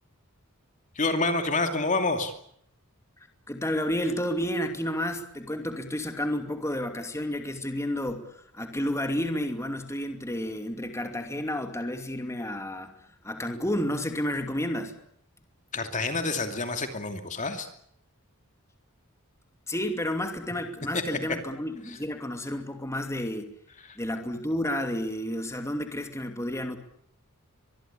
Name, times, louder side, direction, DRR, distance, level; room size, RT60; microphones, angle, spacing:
voice 1, 1.0-2.3 15.7-17.7 20.9-21.0 21.9-22.0, left 3 dB, 35° left, 7 dB, 2.6 m, -28 dB
voice 2, 3.5-12.9 13.2-15.0 19.7-23.5 24.0-26.8, left 1 dB, 15° left, 6 dB, 2.7 m, -31 dB
24.5 x 21.5 x 8.6 m, 0.70 s
head